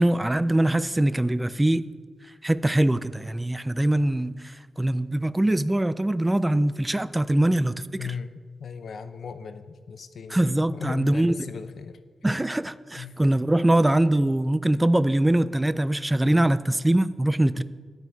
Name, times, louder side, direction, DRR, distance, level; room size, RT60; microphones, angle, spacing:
voice 1, 0.0-1.8 2.4-8.0 10.3-11.3 12.2-17.6, right 1 dB, 10° right, 15 dB, 0.3 m, -23 dB
voice 2, 8.0-10.4 10.7-12.0 13.0-13.2, left 6 dB, 60° left, 10 dB, 0.6 m, -37 dB
12.0 x 9.3 x 4.6 m, 1.6 s
wide cardioid pair, 150°, 0 cm